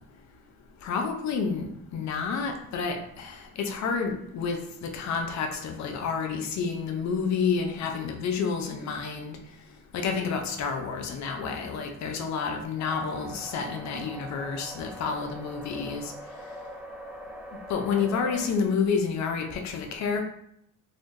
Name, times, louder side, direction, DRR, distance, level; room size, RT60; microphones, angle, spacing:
voice 1, 0.8-9.4 9.9-16.1 17.7-20.2, left 5 dB, 60° left, 4 dB, 0.6 m, -29 dB
sound 1, 12.8-18.5, equal, 5° right, 0.5 m, -42 dB
4.0 x 3.1 x 2.6 m, 0.74 s
cardioid pair, 140°, 32 cm